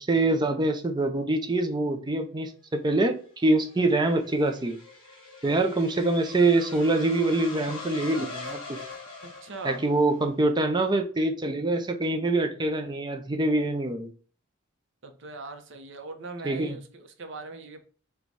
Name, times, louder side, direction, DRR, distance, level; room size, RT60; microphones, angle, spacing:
voice 1, 0.0-4.8 5.4-8.8 9.6-14.1 16.4-16.8, right 2 dB, 20° right, 0.5 m, -25 dB
sound 1, 3.2-10.3, left 3 dB, 25° left, 1.9 m, -42 dB
voice 2, 9.2-9.8 15.0-17.8, right 3 dB, 65° right, 0.7 m, -40 dB
4.6 x 2.3 x 4.0 m
head